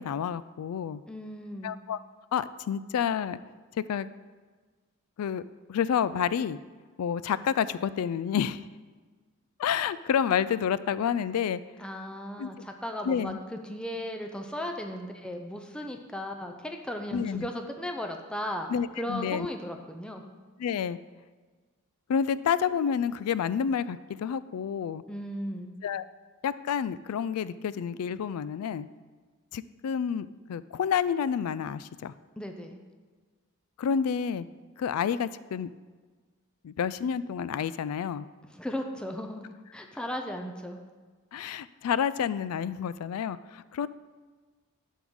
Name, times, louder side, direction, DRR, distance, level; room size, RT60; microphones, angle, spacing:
voice 1, 0.0-1.0 1.6-2.0 2.3-3.4 3.9-4.1 5.2-6.6 7.0-8.7 9.6-11.6 12.4-12.7 13.1-13.4 17.1-17.5 18.7-19.5 20.6-21.0 22.1-25.0 25.8-26.1 26.4-28.9 29.5-32.1 33.8-34.5 34.8-35.7 36.6-38.2 41.3-43.9, left 7 dB, 85° left, 16 dB, 0.3 m, -29 dB
voice 2, 1.1-1.7 11.8-18.7 19.0-20.2 25.1-25.7 32.4-32.8 38.5-39.4 39.7-40.8, equal, 5° left, 3 dB, 0.5 m, -36 dB
10.5 x 3.7 x 6.2 m, 1.4 s
head